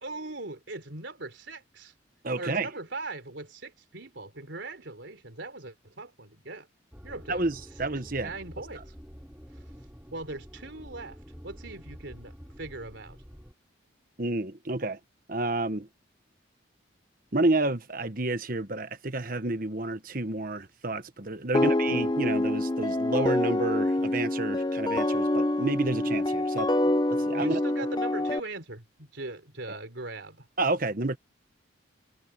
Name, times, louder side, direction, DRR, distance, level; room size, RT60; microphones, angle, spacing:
voice 1, 0.0-1.9 2.4-6.7 7.0-7.4 8.1-8.9 10.1-11.2 11.4-13.2 21.5-21.6 26.5-30.5, right 2 dB, 70° right, 3.6 m, -40 dB
voice 2, 2.2-2.7 7.3-8.3 14.2-15.0 15.3-15.9 17.3-26.7 27.1-27.6 29.7-29.8 30.6-31.2, right 2 dB, 45° right, 1.3 m, -30 dB
sound 1, 6.9-13.5, equal, 5° right, 6.7 m, -47 dB
sound 2, 21.5-28.4, left 1 dB, 20° left, 0.7 m, -26 dB
head